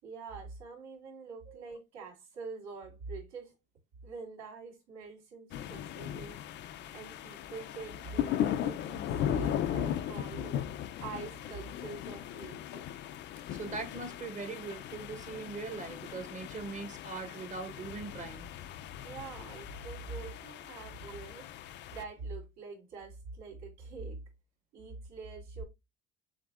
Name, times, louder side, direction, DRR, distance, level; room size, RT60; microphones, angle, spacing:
voice 1, 0.0-3.5 4.0-6.4 6.9-10.6 11.0-12.9 17.3-17.4 19.0-24.2 24.7-25.6, right 4 dB, 85° right, 3.1 m, -44 dB
sound 1, 5.5-22.0, left 11 dB, 40° left, 0.4 m, -38 dB
voice 2, 13.5-18.5, right 4 dB, 25° right, 0.9 m, -41 dB
7.2 x 2.7 x 2.4 m
cardioid pair, 140°, 29 cm